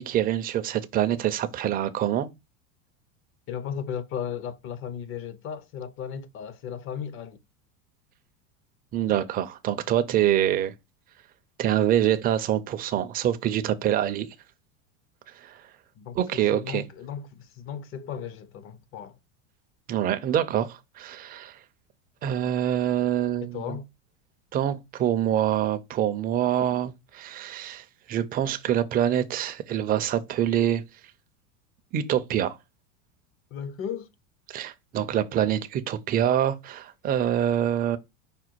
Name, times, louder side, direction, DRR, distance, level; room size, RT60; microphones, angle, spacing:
voice 1, 0.0-2.3 8.9-10.7 11.6-14.3 15.4-15.6 16.2-16.8 19.9-21.6 22.2-23.8 24.5-30.8 31.9-32.6 34.5-38.0, right 11 dB, 25° right, 0.4 m, -25 dB
voice 2, 3.5-7.4 16.0-19.2 23.4-23.9 33.5-34.1, left 8 dB, 35° left, 0.5 m, -35 dB
5.0 x 2.2 x 4.4 m
supercardioid pair, 120°, 41 cm